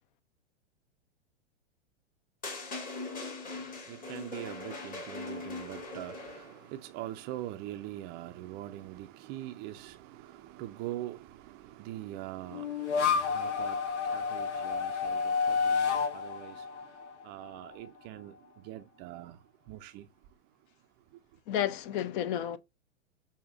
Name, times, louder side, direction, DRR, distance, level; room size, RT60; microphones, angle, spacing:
sound 1, 2.4-6.7, left 3 dB, 25° left, 1.6 m, -41 dB
voice 1, 3.4-20.3 21.1-21.2, right 14 dB, 30° right, 0.4 m, -43 dB
sound 2, 12.5-17.7, left 5 dB, 75° left, 0.9 m, -30 dB
voice 2, 21.5-22.6, left 10 dB, 45° left, 0.6 m, -31 dB
6.4 x 2.7 x 2.5 m
hypercardioid pair, 100°, 35 cm